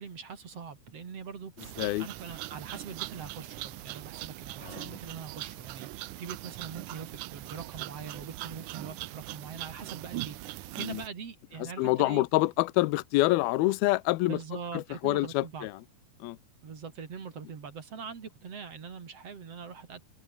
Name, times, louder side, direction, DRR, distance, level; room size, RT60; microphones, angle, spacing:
voice 1, 0.0-12.2 14.3-15.7 16.6-20.0, right 6 dB, 45° right, 3.3 m, -43 dB
sound 1, 1.6-11.1, right 17 dB, 80° right, 1.8 m, -41 dB
voice 2, 11.8-14.4 14.7-15.7 16.2-16.4, left 19 dB, 80° left, 2.6 m, -26 dB
open air
omnidirectional pair, 4.4 m